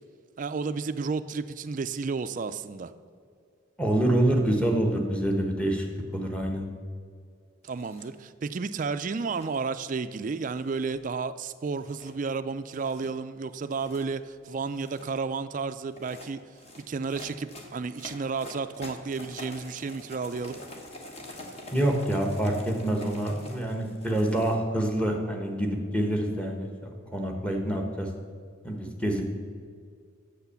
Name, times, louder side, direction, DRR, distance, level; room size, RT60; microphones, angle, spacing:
voice 1, 0.4-2.9 7.6-16.4 16.8-20.6, right 4 dB, 40° right, 11 dB, 0.3 m, -32 dB
voice 2, 3.8-5.8 6.1-6.6 21.7-28.1 28.6-29.2, right 1 dB, 5° left, 1 dB, 1.1 m, -26 dB
sound 1, 7.6-8.1 9.0-9.6 10.3-11.1 11.8-12.1 12.7-13.1 13.6-14.1 14.6-15.2 15.9-24.6, left 1 dB, 30° left, 1.1 m, -46 dB
8.1 x 6.9 x 6.9 m, 2.2 s
head